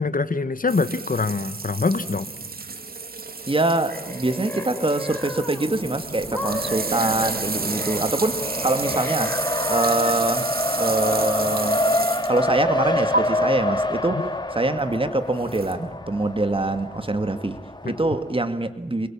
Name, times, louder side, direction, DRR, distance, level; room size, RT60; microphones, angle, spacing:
voice 1, 0.0-2.3 17.8-17.9, left 4 dB, 65° left, 14 dB, 1.3 m, -24 dB
sound 1, 0.7-12.5 13.1-13.2 15.5-15.7, right 3 dB, 90° right, 2.3 m, -31 dB
voice 2, 3.5-9.4 9.7-10.5 10.8-11.9 12.3-19.1, right 2 dB, 35° right, 10 dB, 2.0 m, -24 dB
sound 2, 3.6-5.8 6.3-10.2, left 1 dB, 15° left, 6.2 m, -34 dB
Race car auto racing, 5.7-18.4, left 1 dB, 30° left, 2.3 m, -27 dB
28.0 x 25.0 x 7.2 m, 1.0 s
wide cardioid pair, 60°, 15 cm